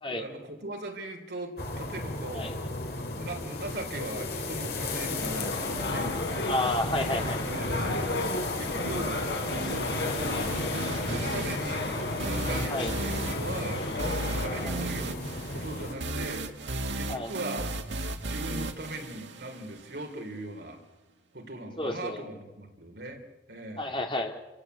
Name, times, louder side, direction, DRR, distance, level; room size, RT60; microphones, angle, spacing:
voice 1, 0.1-2.5 2.8-6.1 7.4-8.2 8.6-9.1 9.8-11.8 12.2-17.7 18.2-20.8 21.3-24.0, right 1 dB, 65° right, 3 dB, 3.7 m, -40 dB
sound 1, 1.6-15.9, left 2 dB, 55° left, 2.6 m, -35 dB
sound 2, 5.0-14.7, left 2 dB, 75° left, 4.0 m, -34 dB
sound 3, 5.0-20.0, right 2 dB, 85° right, 1.9 m, -37 dB
voice 2, 6.4-7.4 12.7-12.9 14.6-14.8 17.1-17.3 21.8-22.2 23.8-24.3, left 1 dB, 30° left, 2 dB, 2.5 m, -30 dB
29.0 x 16.5 x 8.4 m, 1.2 s
head